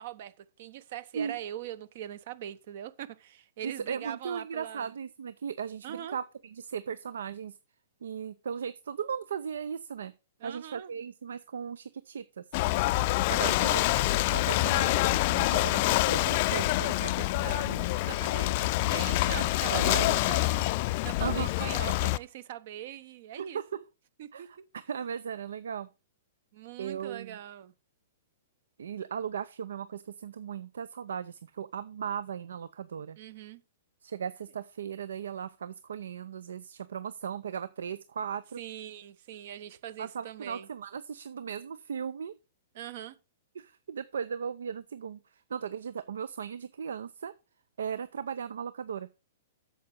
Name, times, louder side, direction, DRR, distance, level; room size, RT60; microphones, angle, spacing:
voice 1, 0.0-4.9 5.8-6.2 10.4-10.9 13.4-13.9 17.9-20.7 21.0-23.6 24.2-24.6 26.5-27.7 33.2-33.6 38.6-40.7 42.7-43.2, right 11 dB, 55° right, 1.0 m, -42 dB
voice 2, 3.6-6.2 6.5-7.5 8.0-10.1 10.4-12.4 13.3-17.9 19.3-20.2 21.2-21.7 23.4-23.8 24.3-25.9 26.8-27.4 28.8-33.2 34.0-38.6 40.0-42.4 43.6-45.2 45.5-47.3 47.8-49.1, right 7 dB, 70° right, 0.5 m, -37 dB
Ocean / Boat Water vehicle, 12.5-22.2, left 19 dB, 45° left, 0.4 m, -26 dB
8.6 x 7.1 x 5.3 m
hypercardioid pair, 115°, 0 cm